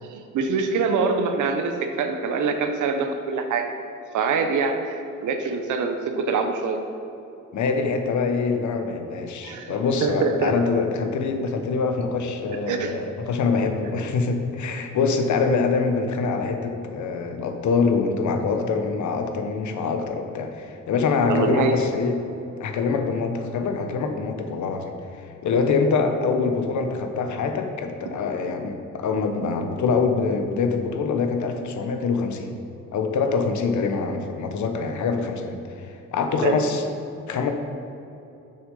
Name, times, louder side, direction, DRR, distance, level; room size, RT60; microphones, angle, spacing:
voice 1, 0.0-3.7 4.1-6.8 9.4-9.7 10.0-10.5 12.7-12.9 21.3-21.7 36.4-36.6, right 5 dB, 75° right, 6 dB, 0.9 m, -24 dB
voice 2, 7.5-22.2 22.6-24.9 25.2-32.5 32.9-36.8 37.3-37.5, left 4 dB, 70° left, 6 dB, 1.0 m, -24 dB
6.8 x 6.5 x 5.4 m, 2.8 s
cardioid pair, 100°, 31 cm